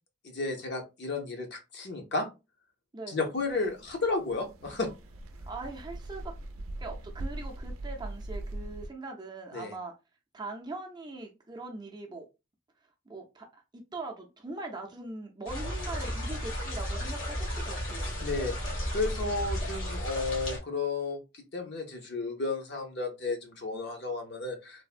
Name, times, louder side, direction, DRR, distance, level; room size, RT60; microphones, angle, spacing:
voice 1, 0.2-2.3 3.1-4.9 9.5-9.7 18.2-18.5 18.9-21.2 21.5-24.8, left 3 dB, 55° left, 4 dB, 0.7 m, -32 dB
sound 1, 3.3-8.9, right 1 dB, 90° right, 0.5 m, -41 dB
voice 2, 5.5-6.4 6.8-9.9 10.3-12.3 13.1-18.2, right 2 dB, 20° right, 2 dB, 0.4 m, -41 dB
sound 2, 15.5-20.6, equal, 80° left, 1.2 m, -34 dB
3.3 x 2.0 x 2.4 m, 0.27 s
head